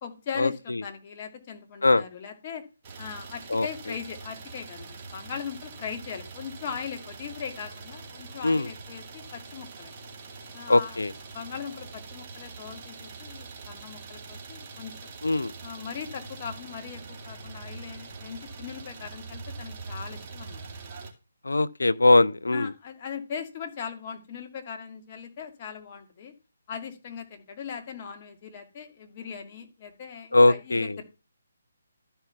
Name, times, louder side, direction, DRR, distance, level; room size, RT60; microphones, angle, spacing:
voice 1, 0.0-2.6 3.0-9.9 10.5-11.0 11.3-15.0 15.6-20.6 22.5-26.3 26.7-31.0, left 7 dB, 30° left, 2.4 m, -39 dB
Idling, 2.8-21.1, right 4 dB, 30° right, 2.3 m, -43 dB
voice 2, 10.7-11.1 15.2-15.5 21.4-22.7 30.3-31.0, left 2 dB, 75° left, 0.7 m, -21 dB
13.0 x 5.6 x 5.8 m
figure-of-eight pair, 145°, 0 cm